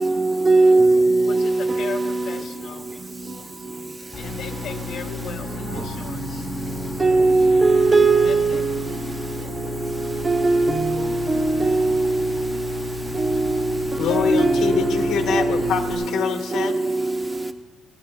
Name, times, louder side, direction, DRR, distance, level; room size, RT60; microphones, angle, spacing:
voice 1, 0.0-1.5 7.0-8.6 10.3-11.2 11.6-12.0 14.3-15.6, right 3 dB, 25° right, 0.8 m, -18 dB
voice 2, 1.3-3.4 3.7-3.8 4.1-7.0 8.2-8.7, left 6 dB, 65° left, 0.6 m, -38 dB
sound 1, 4.1-15.9, left 4 dB, 40° left, 2.9 m, -34 dB
voice 3, 14.0-16.8, left 7 dB, 80° left, 1.3 m, -24 dB
20.0 x 16.5 x 2.3 m
cardioid pair, 130°, 0 cm